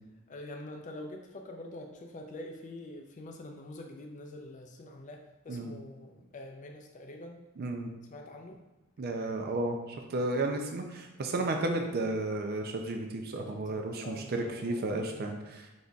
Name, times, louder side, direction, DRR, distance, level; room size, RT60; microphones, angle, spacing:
voice 1, 0.3-7.4 8.1-8.6 13.4-15.5, left 1 dB, 35° left, 2 dB, 0.4 m, -45 dB
voice 2, 7.6-7.9 9.0-15.7, right 2 dB, 45° right, 3 dB, 0.4 m, -33 dB
5.0 x 4.0 x 2.3 m, 1.1 s
head